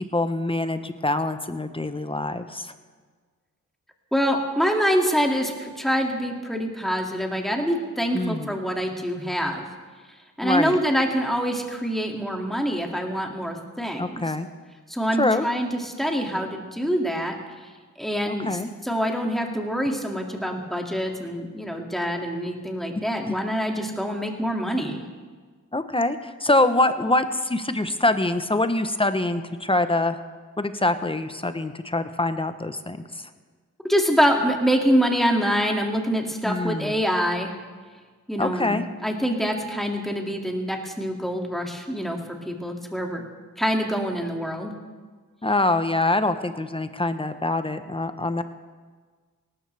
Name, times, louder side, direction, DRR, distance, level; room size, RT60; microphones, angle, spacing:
voice 1, 0.1-2.7 8.1-8.5 10.4-10.8 14.0-14.5 15.2-15.5 18.3-18.7 23.3-23.4 25.7-30.2 30.6-33.2 36.4-37.0 38.4-38.8 45.4-48.4, left 2 dB, 15° left, 10 dB, 0.9 m, -24 dB
voice 2, 4.1-9.7 10.4-14.2 14.9-17.3 18.0-25.0 33.8-37.5 38.3-42.2 42.4-43.2 43.6-44.7, equal, ahead, 1 dB, 2.2 m, -25 dB
18.0 x 13.0 x 3.4 m, 1.5 s
cardioid pair, 65°, 33 cm